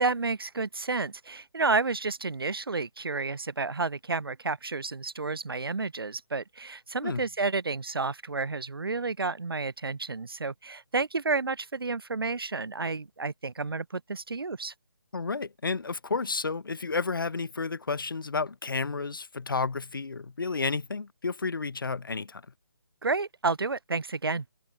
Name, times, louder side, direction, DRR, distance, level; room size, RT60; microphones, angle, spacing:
voice 1, 0.0-14.7 23.0-24.4, right 4 dB, 75° right, 0.5 m, -30 dB
voice 2, 15.1-22.4, left 4 dB, 65° left, 0.7 m, -31 dB
open air
figure-of-eight pair, 150°, 12 cm